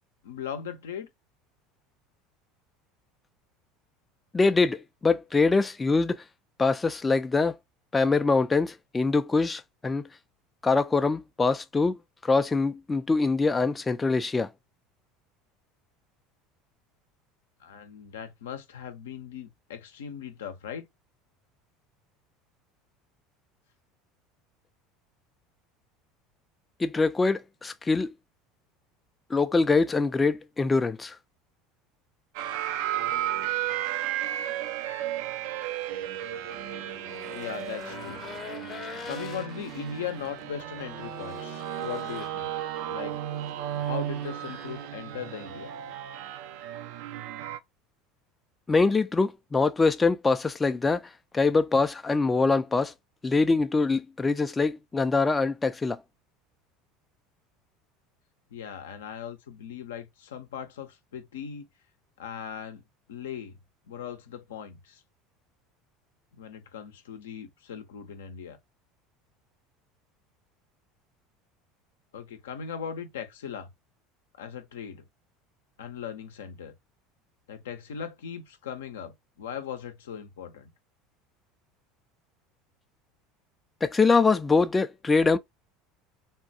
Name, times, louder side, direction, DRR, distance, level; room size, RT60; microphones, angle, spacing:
voice 1, 0.2-1.1 17.6-20.9 37.3-38.2 39.0-42.5 42.8-43.2 43.8-45.7 58.5-61.7 62.2-62.8 63.1-63.6 63.9-65.0 66.3-68.6 72.1-73.7 74.4-75.0 75.8-76.7 77.5-80.7, left 8 dB, 75° left, 0.5 m, -39 dB
voice 2, 4.3-6.2 6.6-7.6 7.9-10.1 10.6-14.5 26.8-28.1 29.3-31.2 48.7-52.9 53.2-56.0 83.8-85.4, left 3 dB, 20° left, 0.3 m, -24 dB
sound 1, 32.3-47.6, right 12 dB, 65° right, 0.3 m, -34 dB
Race car auto racing / Engine, 35.9-46.0, left 6 dB, 40° left, 0.8 m, -45 dB
3.5 x 2.2 x 2.7 m
hypercardioid pair, 70°, 0 cm